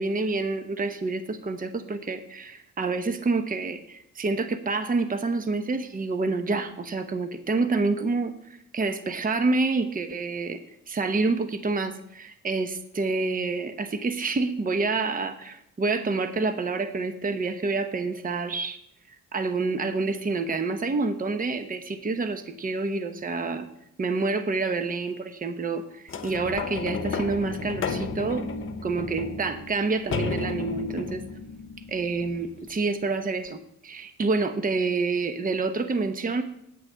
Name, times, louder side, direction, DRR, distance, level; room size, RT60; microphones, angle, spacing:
voice 1, 0.0-8.3 8.7-10.6 10.9-18.8 19.3-23.7 24.0-28.4 28.8-31.2 31.9-36.4, right 3 dB, 30° right, 9 dB, 1.0 m, -28 dB
sound 1, 26.1-32.9 33.5-33.6, left 4 dB, 45° left, 1.1 m, -33 dB
9.6 x 6.4 x 6.4 m, 0.76 s
cardioid pair, 90°, 30 cm